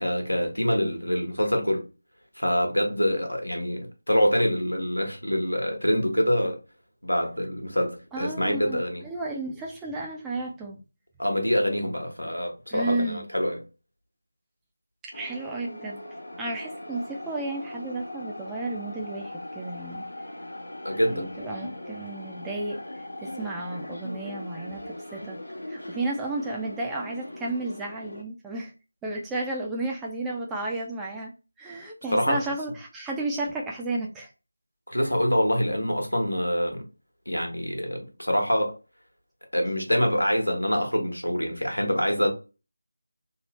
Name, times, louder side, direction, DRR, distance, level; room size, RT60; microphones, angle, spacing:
voice 1, 0.0-1.8 2.4-6.6 7.0-9.0 11.2-13.6 20.8-21.3 32.1-32.4 34.9-36.8 37.3-38.8 39.5-42.3, equal, 85° left, 1.1 m, -25 dB
voice 2, 8.1-10.8 12.7-13.3 15.1-16.0 16.4-20.1 21.1-25.4 25.7-28.7 29.0-31.3 31.6-34.3, right 2 dB, 5° right, 0.4 m, -33 dB
sound 1, 15.1-28.2, left 1 dB, 65° left, 0.9 m, -40 dB
3.1 x 2.0 x 3.1 m
figure-of-eight pair, 165°, 0 cm